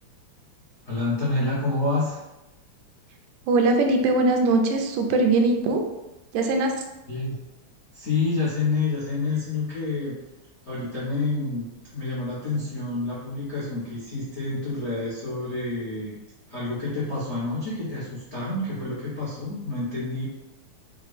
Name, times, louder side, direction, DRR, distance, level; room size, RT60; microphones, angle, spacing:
voice 1, 0.8-2.2 7.1-7.4 7.9-10.2 10.6-16.1 16.5-20.2, left 3 dB, 70° left, -9 dB, 0.6 m, -28 dB
voice 2, 3.5-5.8 6.3-6.7, right 2 dB, 85° right, 3 dB, 2.0 m, -21 dB
5.8 x 2.5 x 3.3 m, 1.0 s
omnidirectional pair, 3.4 m